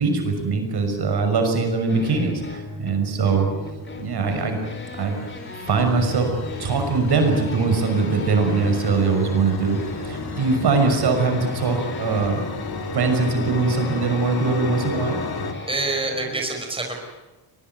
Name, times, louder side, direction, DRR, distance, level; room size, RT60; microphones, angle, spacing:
voice 1, 0.0-3.5 4.0-4.6 5.0-5.2 5.5-6.3 6.6-9.8 10.0-12.4 12.9-15.2, right 4 dB, 60° right, 5 dB, 6.1 m, -22 dB
sound 1, 1.9-16.3, left 2 dB, 25° left, 3.9 m, -36 dB
sound 2, 4.0-15.5, left 3 dB, 55° left, 2.8 m, -33 dB
voice 2, 15.7-17.0, right 2 dB, 10° right, 2 dB, 5.2 m, -26 dB
23.0 x 20.5 x 9.3 m, 1.1 s
cardioid pair, 110°, 44 cm